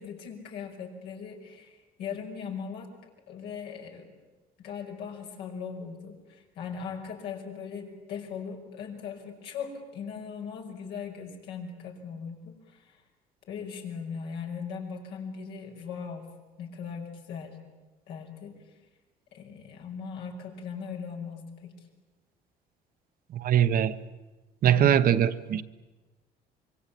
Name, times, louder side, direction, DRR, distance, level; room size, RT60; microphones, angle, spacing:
voice 1, 0.0-2.9 3.3-4.1 4.6-13.0 13.5-16.3 16.6-17.6 18.1-18.5 19.3-21.7, left 6 dB, 85° left, 1 dB, 5.4 m, -39 dB
voice 2, 23.3-24.0 24.6-25.6, right 9 dB, 60° right, 10 dB, 1.1 m, -22 dB
25.5 x 23.5 x 8.6 m, 1.2 s
cardioid pair, 110°, 17 cm